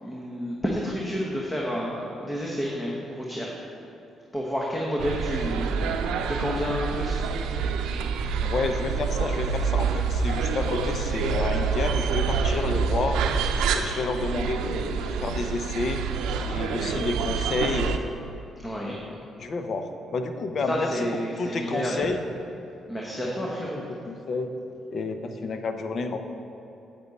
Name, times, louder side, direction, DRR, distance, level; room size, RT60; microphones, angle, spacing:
voice 1, 0.0-3.5 4.3-5.9 6.3-7.2 18.6-18.9 20.7-22.0 22.9-23.8, equal, 15° left, -3 dB, 1.2 m, -30 dB
sound 1, 5.0-18.0, right 5 dB, 90° right, 0.5 m, -27 dB
voice 2, 8.4-13.2 13.7-16.0 16.5-18.0 18.8-18.9 19.4-22.2 23.2-23.3 23.9-24.5 24.9-26.2, left 3 dB, 50° left, 7 dB, 0.7 m, -30 dB
8.7 x 8.2 x 4.2 m, 3.0 s
cardioid pair, 90°, 0 cm